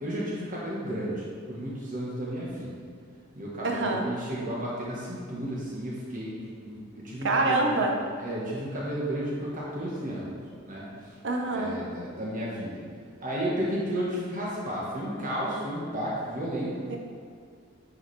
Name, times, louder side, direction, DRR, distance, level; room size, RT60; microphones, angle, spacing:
voice 1, 0.0-2.7 3.3-7.8 8.2-10.3 10.6-11.1 11.5-12.8 13.2-16.8, equal, 40° right, -6 dB, 1.3 m, -33 dB
voice 2, 3.6-4.1 7.2-7.9 11.2-11.8 16.8-17.0, right 2 dB, 60° right, 2 dB, 0.8 m, -26 dB
9.7 x 4.9 x 3.3 m, 2.2 s
head